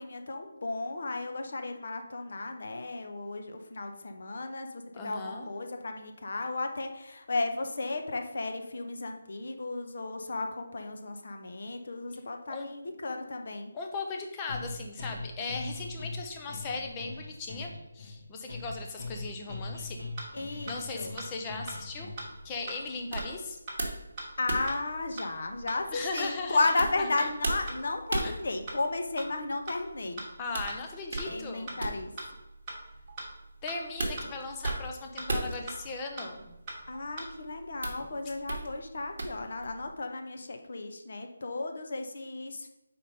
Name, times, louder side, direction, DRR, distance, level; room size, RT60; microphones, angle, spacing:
voice 1, 0.0-13.7 20.3-21.2 24.4-30.2 31.2-32.1 36.9-42.7, left 3 dB, 45° left, 5 dB, 0.8 m, -34 dB
voice 2, 4.9-5.5 12.5-12.7 13.7-20.0 20.7-22.1 22.4-23.6 25.9-26.7 27.0-27.3 28.2-28.3 30.4-31.8 33.6-36.5, left 3 dB, 10° left, 2 dB, 0.5 m, -38 dB
sound 1, 14.5-22.4, left 2 dB, 70° left, 2.1 m, -41 dB
sound 2, 20.2-20.3 20.7-20.8 21.2-21.3 21.7-21.8 22.2-22.3 22.7-22.8 23.2-23.3 23.7-23.8 24.2-24.3 24.7-24.8 25.2-25.3 25.7-25.8 26.2-26.3 26.7-26.8 27.2-27.3 27.7-27.8 28.2-28.3 28.7-28.8 29.2-29.3 29.7-29.8 30.2-30.3 30.7-30.8 31.2-31.3 31.7-31.8 32.2-32.3 32.7-32.8 33.2-33.3 33.7-33.8 34.2-34.3 34.7-34.8 35.2-35.3 35.7-35.8 36.2-36.3 36.7-36.8 37.2-37.3, right 2 dB, 10° right, 1.3 m, -39 dB
sound 3, 21.5-39.9, right 2 dB, 40° right, 1.2 m, -39 dB
4.9 x 4.3 x 5.3 m, 0.98 s
hypercardioid pair, 180°, 0 cm